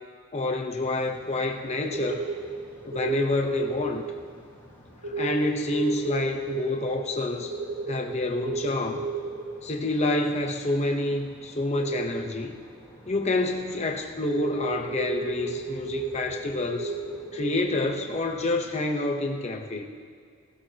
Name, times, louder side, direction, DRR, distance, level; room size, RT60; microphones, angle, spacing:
voice 1, 0.3-2.2 2.8-4.0 5.1-7.5 7.9-9.1 9.6-12.5 13.1-16.9 17.3-19.8, left 2 dB, 30° left, 2 dB, 0.8 m, -28 dB
sound 1, 0.8-18.9, equal, 10° left, 4.1 m, -53 dB
sound 2, 1.8-3.9 5.0-9.7 11.7-12.0 12.9-15.5 15.8-16.4 16.7-17.5, right 3 dB, 85° right, 2.5 m, -33 dB
19.0 x 15.5 x 2.9 m, 2.1 s
head